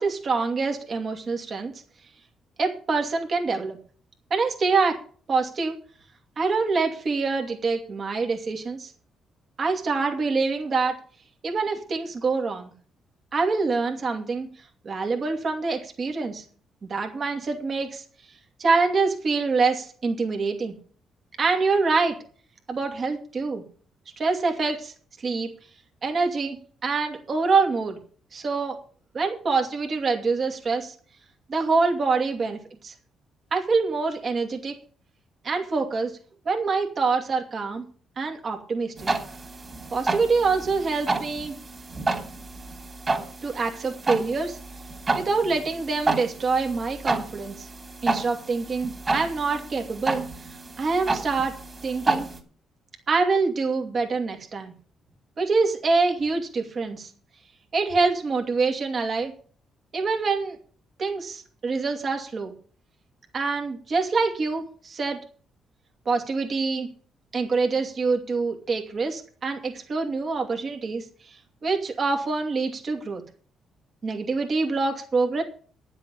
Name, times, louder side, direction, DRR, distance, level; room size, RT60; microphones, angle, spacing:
voice 1, 0.0-1.7 2.6-3.8 4.3-5.0 5.3-5.8 6.4-8.9 9.6-10.9 11.4-12.7 13.3-14.5 14.8-16.4 16.9-18.0 18.6-20.7 21.4-22.2 22.7-23.6 24.2-24.9 25.2-25.5 26.0-26.6 26.8-28.0 28.3-28.8 29.1-30.9 31.5-32.9 33.5-34.7 35.4-36.1 36.4-37.8 38.2-39.1 39.9-41.5 43.4-44.6 45.1-47.7 48.0-50.2 50.8-51.5 51.8-52.3 53.1-54.7 55.4-57.1 57.7-59.3 59.9-60.6 61.0-62.5 63.3-65.2 66.1-66.9 67.3-73.2 74.0-75.4, right 4 dB, 45° right, 3 dB, 2.6 m, -25 dB
sound 1, 39.0-52.4, right 3 dB, 30° right, 3.3 m, -30 dB
10.5 x 7.5 x 8.4 m, 0.43 s
cardioid pair, 90°, 0 cm